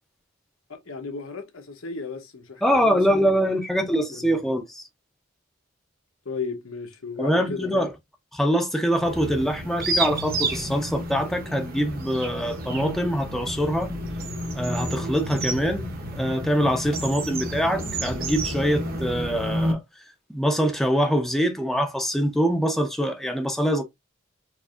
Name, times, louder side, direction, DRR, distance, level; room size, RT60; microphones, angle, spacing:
voice 1, 0.7-4.4 6.2-7.9, left 4 dB, 80° left, 1.0 m, -35 dB
voice 2, 2.6-4.8 7.2-7.9 8.3-13.9 14.5-19.8 20.3-23.8, equal, ahead, 0.5 m, -24 dB
sound 1, 8.9-19.7, right 1 dB, 45° right, 1.1 m, -30 dB
4.7 x 2.6 x 2.4 m
head